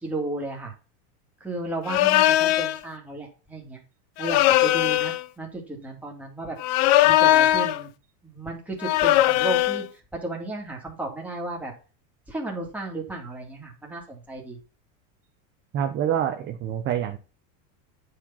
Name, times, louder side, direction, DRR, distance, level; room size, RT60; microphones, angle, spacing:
voice 1, 0.0-0.7 1.4-3.8 4.2-6.6 7.0-7.9 8.2-9.8 10.1-11.7 12.3-14.6, right 2 dB, 5° right, -1 dB, 2.4 m, -33 dB
sound 1, 1.9-2.8 4.2-5.2 6.6-7.8 8.8-9.9, left 15 dB, 40° left, 0.5 m, -20 dB
voice 2, 15.7-17.2, right 9 dB, 25° right, 5 dB, 0.8 m, -26 dB
9.7 x 4.9 x 5.7 m, 0.33 s
supercardioid pair, 160°, 43 cm